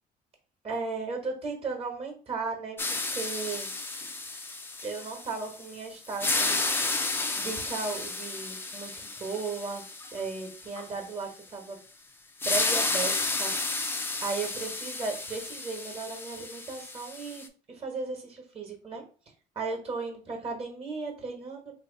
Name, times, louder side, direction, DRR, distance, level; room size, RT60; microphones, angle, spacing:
voice 1, 0.6-3.7 4.8-6.7 7.4-11.8 12.4-19.0 19.5-21.7, right 4 dB, 35° right, 3 dB, 1.1 m, -36 dB
sound 1, 2.8-5.7 6.1-10.9 12.4-17.5, left 3 dB, 15° left, 0.4 m, -32 dB
2.9 x 2.3 x 3.8 m, 0.38 s
cardioid pair, 110°, 17 cm